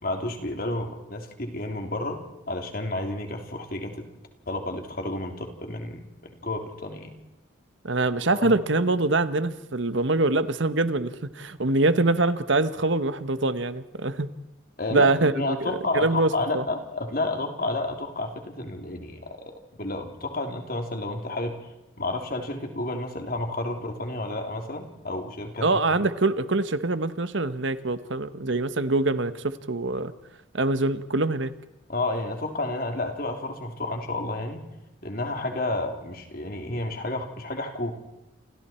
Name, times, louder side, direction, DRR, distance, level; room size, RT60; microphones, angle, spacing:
voice 1, 0.0-2.2 2.5-4.1 4.5-7.1 8.3-8.6 14.8-19.3 19.8-21.5 22.0-26.1 31.9-34.7 35.0-37.9, left 2 dB, 45° left, 4 dB, 3.2 m, -31 dB
voice 2, 7.8-14.3 14.9-16.6 25.6-30.1 30.5-31.5, right 2 dB, 70° right, 12 dB, 1.2 m, -24 dB
28.5 x 28.5 x 4.5 m, 0.95 s
head